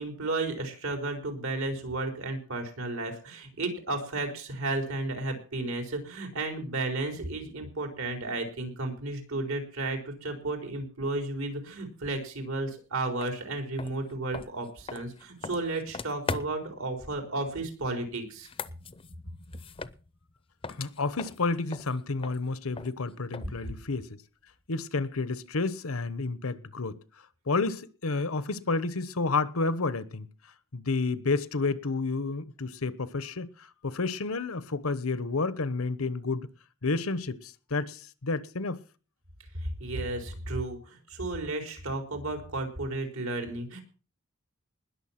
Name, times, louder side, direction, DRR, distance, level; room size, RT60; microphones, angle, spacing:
voice 1, 0.0-18.5 23.6-23.8 39.6-43.8, right 2 dB, 80° right, 4.2 m, -33 dB
sound 1, 13.2-13.3 13.7-16.8 18.3-20.4 20.6-23.7, left 4 dB, 25° left, 0.6 m, -40 dB
voice 2, 20.7-24.2 24.7-27.0 27.5-30.3 30.7-36.5 36.8-38.8, left 3 dB, 85° left, 1.1 m, -30 dB
20.0 x 7.0 x 5.9 m
head